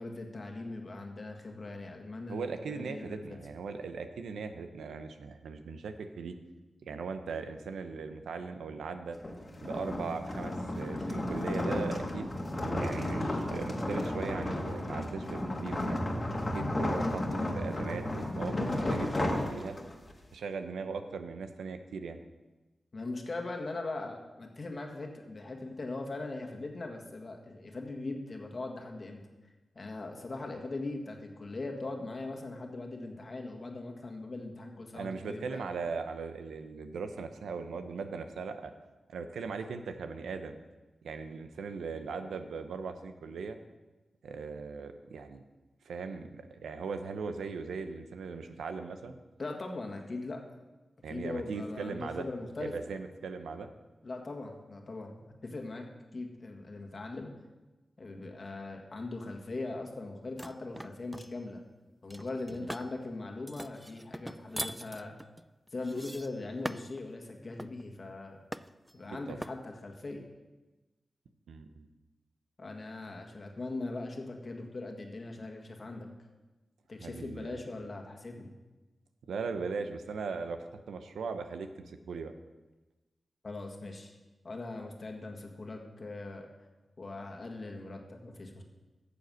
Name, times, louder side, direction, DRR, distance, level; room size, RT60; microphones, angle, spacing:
voice 1, 0.0-3.4 22.9-29.2 29.7-35.6 49.4-50.6 51.1-52.7 54.0-55.9 56.1-57.3 58.0-61.6 62.0-65.2 65.7-68.4 68.9-70.3 72.6-76.1 76.9-78.5 83.4-84.2 84.4-86.5 87.0-88.6, left 2 dB, 50° left, 2 dB, 1.7 m, -40 dB
voice 2, 2.3-6.3 6.8-9.2 9.6-12.3 12.7-16.0 16.5-17.2 17.6-19.8 20.3-22.2 34.9-38.7 39.1-40.6 41.0-43.6 44.2-45.4 45.8-49.2 51.0-52.2 52.6-53.7 62.6-62.7 69.3-69.4 71.5-71.9 77.0-77.6 79.3-82.3, right 5 dB, 90° right, 8 dB, 0.7 m, -39 dB
sound 1, 9.2-20.1, left 1 dB, 35° left, 1.7 m, -33 dB
sound 2, 60.4-61.3 62.1-62.9 63.5-67.0 67.6-67.8 68.5-68.9 69.4-69.6, right 1 dB, 10° right, 0.4 m, -42 dB
9.2 x 6.9 x 6.3 m, 1.1 s
cardioid pair, 45°, 0 cm